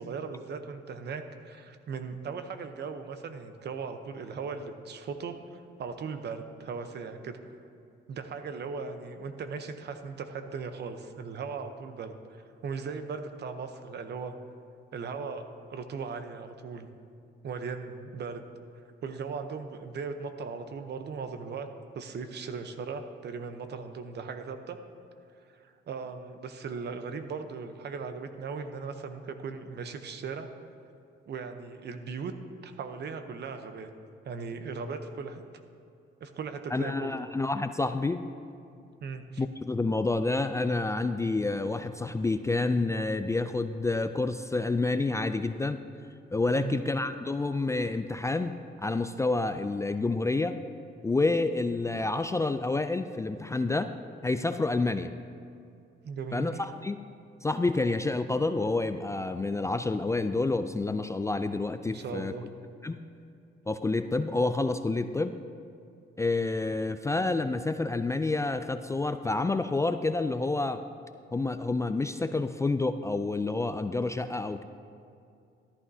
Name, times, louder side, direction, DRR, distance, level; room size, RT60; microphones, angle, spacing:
voice 1, 0.0-7.5 8.1-14.4 14.9-15.4 15.7-16.9 17.4-18.4 19.0-21.7 21.9-24.8 25.5-30.5 31.3-32.3 32.6-33.9 34.2-35.4 36.2-37.3 39.0-39.4 46.5-46.8 56.0-56.7 61.9-62.5, right 5 dB, 60° right, 8 dB, 0.8 m, -38 dB
voice 2, 36.7-38.2 39.4-45.8 46.3-50.6 51.0-53.9 54.2-55.1 56.3-57.0 57.4-62.3 62.8-63.0 63.7-65.3 66.2-70.8 71.3-74.6, left 3 dB, 15° left, 9 dB, 0.3 m, -28 dB
13.5 x 11.5 x 2.7 m, 2.5 s
cardioid pair, 90°, 20 cm